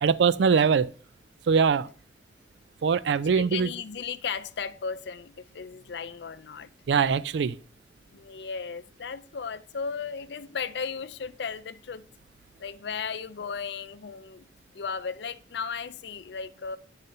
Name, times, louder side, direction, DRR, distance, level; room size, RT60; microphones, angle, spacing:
voice 1, 0.0-0.9 1.5-1.9 2.8-3.7 6.9-7.6, right 6 dB, 85° right, 0.4 m, -22 dB
voice 2, 3.3-6.7 8.1-12.0 12.6-14.5 14.7-16.8, left 6 dB, 75° left, 0.5 m, -35 dB
9.2 x 4.0 x 5.4 m
head